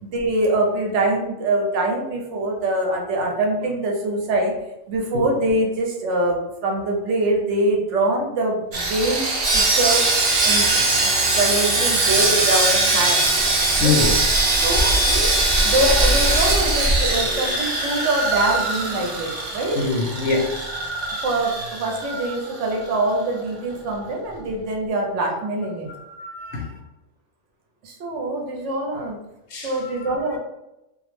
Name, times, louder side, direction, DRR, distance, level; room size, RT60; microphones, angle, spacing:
voice 1, 0.0-4.5 4.9-9.2 9.5-10.7 11.0-13.2 13.8-14.1 14.6-19.8 21.1-25.9 27.8-29.2 29.6-30.4, right 1 dB, 75° right, 0 dB, 0.9 m, -24 dB
Sawing, 8.7-23.0 23.2-23.4 23.9-24.0, right 2 dB, 55° right, 0.4 m, -21 dB
voice 2, 13.8-14.2 19.7-20.4 25.9-26.7 29.5-30.4, left 4 dB, 65° left, 0 dB, 0.8 m, -25 dB
2.4 x 2.0 x 3.0 m, 0.91 s
omnidirectional pair, 1.3 m